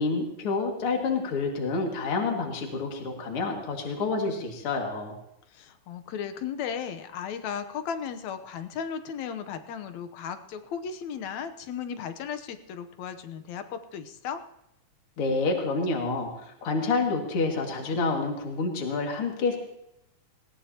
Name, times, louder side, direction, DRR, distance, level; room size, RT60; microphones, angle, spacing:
voice 1, 0.0-5.2 15.2-19.6, left 3 dB, 45° left, 1 dB, 2.9 m, -28 dB
voice 2, 5.5-14.4, left 7 dB, 70° left, 9 dB, 2.1 m, -35 dB
20.5 x 18.0 x 2.9 m, 0.83 s
omnidirectional pair, 3.5 m